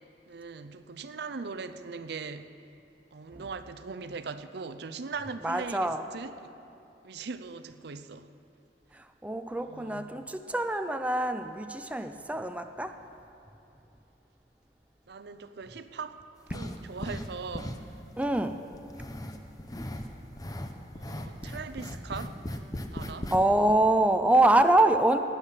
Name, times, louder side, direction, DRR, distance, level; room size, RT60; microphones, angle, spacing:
voice 1, 0.3-2.5 3.1-6.5 7.0-8.3 9.6-10.1 15.1-16.2 16.5-17.9 21.0-22.6 22.9-23.3, right 4 dB, 65° right, 11 dB, 0.5 m, -40 dB
voice 2, 5.4-6.0 8.9-13.0 16.7-16.8 18.2-18.6 23.3-25.2, right 1 dB, 10° right, 7 dB, 0.4 m, -25 dB
sound 1, 16.5-17.3 17.5-18.4 18.7-20.1 20.4-23.4 23.7-23.8, left 1 dB, 20° left, 0.8 m, -37 dB
17.5 x 10.0 x 5.7 m, 2.7 s
head